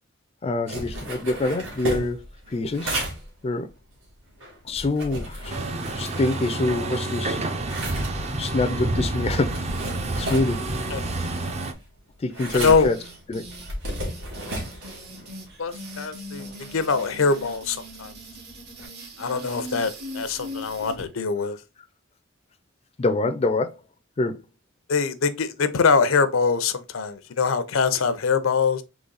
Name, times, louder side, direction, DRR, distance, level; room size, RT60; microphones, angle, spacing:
voice 1, 0.4-2.2 2.5-3.0 3.4-3.7 4.7-5.6 6.0-7.4 8.4-9.5 10.2-10.6 12.2-13.0 13.3-13.4 23.0-23.7 24.2-24.4, left 2 dB, 30° left, 0.4 m, -25 dB
sound 1, 0.7-6.9 7.2-18.9, right 1 dB, 70° right, 1.9 m, -36 dB
Truck, 5.5-11.7, right 2 dB, 35° right, 0.5 m, -28 dB
voice 2, 12.5-12.9 15.6-18.1 19.2-21.6 24.9-28.8, left 5 dB, 85° left, 0.6 m, -23 dB
sound 2, 12.8-21.1, equal, 55° right, 1.2 m, -40 dB
4.0 x 3.1 x 3.8 m
head